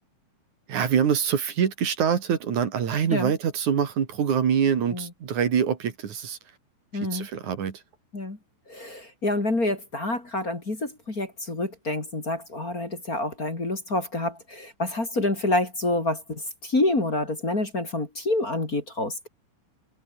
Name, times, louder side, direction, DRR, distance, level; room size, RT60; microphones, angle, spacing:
voice 1, 0.7-6.4 7.0-7.8, right 8 dB, 50° right, 3.3 m, -25 dB
voice 2, 6.9-7.3 8.1-8.4 8.7-19.3, left 2 dB, 20° left, 3.1 m, -27 dB
omnidirectional pair, 5.1 m